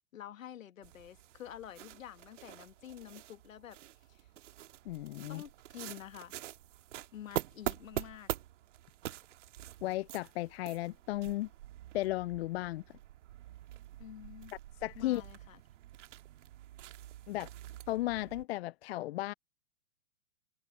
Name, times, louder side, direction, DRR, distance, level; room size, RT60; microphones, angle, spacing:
voice 1, 0.1-3.8 4.1-4.3 5.3-6.4 7.1-8.3 14.0-14.5 15.0-15.6, left 10 dB, 75° left, 1.8 m, -49 dB
sound 1, 0.8-18.4, right 13 dB, 65° right, 2.1 m, -45 dB
voice 2, 4.9-5.4 9.8-11.5 11.9-12.8 14.8-15.2 17.3-17.5 17.9-19.3, left 16 dB, 50° left, 0.5 m, -35 dB
hypercardioid pair, 120°, 40 cm